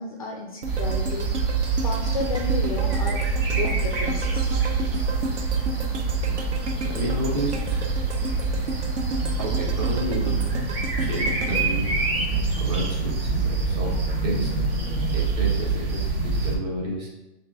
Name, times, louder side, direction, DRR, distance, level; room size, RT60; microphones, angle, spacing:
voice 1, 0.0-1.3 1.8-4.6, left 4 dB, 35° left, 0 dB, 0.4 m, -33 dB
sound 1, 0.6-16.6, right 4 dB, 55° right, 1.1 m, -25 dB
sound 2, 0.6-12.8 13.2-13.3, right 2 dB, 70° right, 0.8 m, -34 dB
voice 2, 6.8-8.8 9.3-10.6 11.0-11.9 12.6-14.0 14.2-14.5 15.1-17.1, equal, 35° right, -2 dB, 1.2 m, -32 dB
6.3 x 2.6 x 2.6 m, 0.97 s
hypercardioid pair, 145°, 35 cm